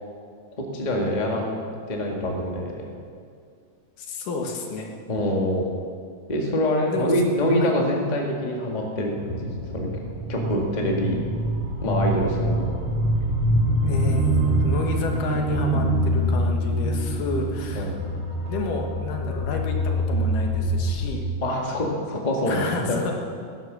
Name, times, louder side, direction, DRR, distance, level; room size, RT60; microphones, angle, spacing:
voice 1, 0.7-1.6 1.9-2.9 5.1-5.7 6.3-9.5 9.7-10.0 10.3-11.2 11.8-12.8 17.7-17.9 21.4-23.0, left 1 dB, 20° left, 0 dB, 1.3 m, -25 dB
voice 2, 4.0-4.9 6.9-7.1 7.6-7.7 13.8-17.9 18.5-21.2 22.5-23.1, left 3 dB, 80° left, 2 dB, 3.2 m, -31 dB
sound 1, 9.1-21.1, right 1 dB, 45° right, 5.1 m, -25 dB
18.5 x 11.0 x 6.2 m, 2.2 s
omnidirectional pair, 3.7 m